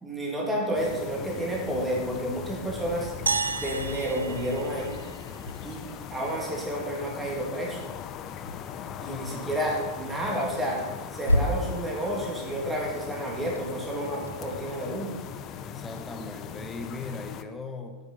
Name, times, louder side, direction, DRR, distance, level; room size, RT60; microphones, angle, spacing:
voice 1, 0.0-3.1 3.6-4.9 5.6-5.8 6.1-7.8 9.0-15.1, right 1 dB, 10° right, -2 dB, 2.5 m, -30 dB
sound 1, 0.7-17.4, left 8 dB, 35° left, 0.5 m, -40 dB
sound 2, 3.3-5.7, right 4 dB, 75° right, 0.4 m, -32 dB
sound 3, 3.4-17.0, equal, 85° left, 0.4 m, -37 dB
voice 2, 9.1-9.5 15.6-18.0, left 3 dB, 15° left, 5 dB, 1.1 m, -39 dB
8.2 x 6.9 x 5.6 m, 1.3 s
figure-of-eight pair, 90°, 0 cm